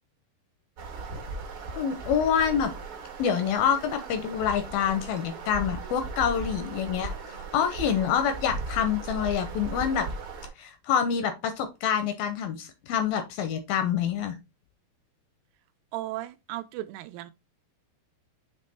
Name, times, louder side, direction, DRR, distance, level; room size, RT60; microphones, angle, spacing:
sound 1, 0.8-10.5, right 3 dB, 65° right, 1.2 m, -37 dB
voice 1, 1.8-2.7 3.2-10.1 10.6-14.3, left 8 dB, 80° left, 2.2 m, -27 dB
voice 2, 15.9-17.3, right 15 dB, 85° right, 2.6 m, -36 dB
7.5 x 3.2 x 4.2 m
omnidirectional pair, 4.9 m